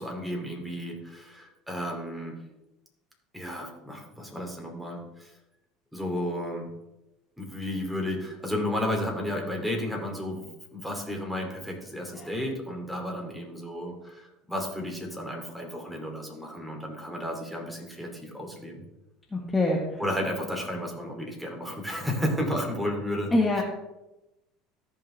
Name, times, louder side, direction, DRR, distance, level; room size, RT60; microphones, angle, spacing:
voice 1, 0.0-2.4 3.3-5.3 5.9-6.7 7.4-10.5 10.7-18.8 20.0-23.6, left 1 dB, 5° right, 0 dB, 2.9 m, -33 dB
voice 2, 19.3-19.8 23.3-23.6, left 2 dB, 15° left, -1 dB, 1.5 m, -23 dB
14.0 x 5.5 x 3.4 m, 0.97 s
hypercardioid pair, 85°, 0 cm